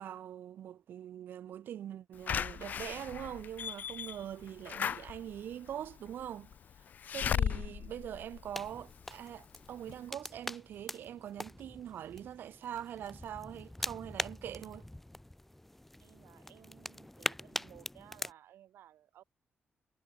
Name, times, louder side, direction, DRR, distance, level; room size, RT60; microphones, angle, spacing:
voice 1, 0.0-6.5 7.1-14.9, right 10 dB, 60° right, 0.4 m, -43 dB
Slam / Alarm, 2.3-9.1 9.6-9.7 9.9-10.0, left 8 dB, 50° left, 0.6 m, -37 dB
sound 1, 8.5-18.3, left 1 dB, 5° left, 0.5 m, -43 dB
voice 2, 16.0-19.2, right 12 dB, 90° right, 0.8 m, -58 dB
wide cardioid pair, 170°, 4 cm